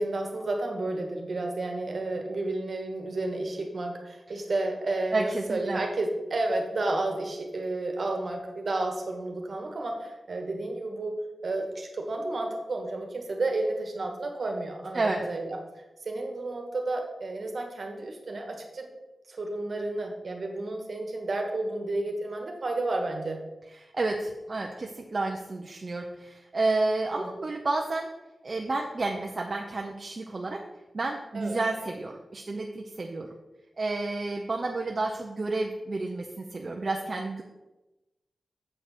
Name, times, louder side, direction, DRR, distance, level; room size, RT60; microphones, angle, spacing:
voice 1, 0.0-18.9 19.3-23.4 27.1-27.3 31.3-31.6, right 2 dB, 50° right, 3 dB, 1.4 m, -31 dB
voice 2, 5.1-5.8 14.9-15.2 23.8-28.1 28.4-30.6 30.9-33.3 33.8-37.4, right 2 dB, 35° right, 1 dB, 0.6 m, -30 dB
7.5 x 5.2 x 5.9 m, 1.0 s
wide cardioid pair, 155°, 0 cm